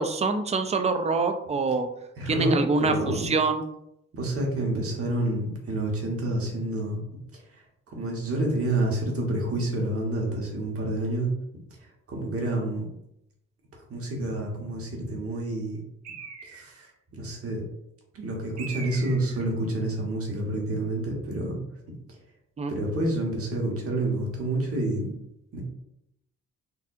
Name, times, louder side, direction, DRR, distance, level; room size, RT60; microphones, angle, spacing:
voice 1, 0.0-1.9 2.3-3.6 22.6-22.7, right 3 dB, 20° right, 8 dB, 0.4 m, -25 dB
voice 2, 2.2-3.3 4.1-7.0 7.3-11.3 12.1-12.9 13.9-15.8 16.4-17.6 18.1-21.6 22.7-25.1 25.5-25.6, right 1 dB, 50° right, -1 dB, 1.2 m, -29 dB
Bird, 16.0-16.9 18.6-19.5, right 6 dB, 65° right, 0.8 m, -41 dB
4.3 x 2.6 x 2.5 m, 0.80 s
cardioid pair, 90°, 30 cm